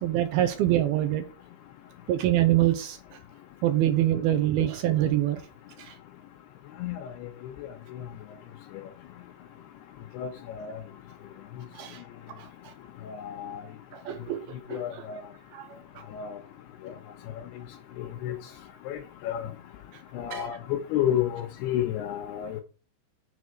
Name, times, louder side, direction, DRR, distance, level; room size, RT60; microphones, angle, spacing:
voice 1, 0.0-1.3 2.1-3.0 3.6-5.4 5.8-5.9 11.7-12.0 12.4-12.7 13.9-15.0 15.5-15.8 20.3-20.4, right 13 dB, 80° right, 2.3 m, -25 dB
voice 2, 13.1-13.6 14.7-15.2 16.1-16.4 18.0-18.4 18.9-19.0 19.2-19.5 20.1-22.6, left 10 dB, 75° left, 2.6 m, -30 dB
7.0 x 4.0 x 6.4 m
omnidirectional pair, 5.1 m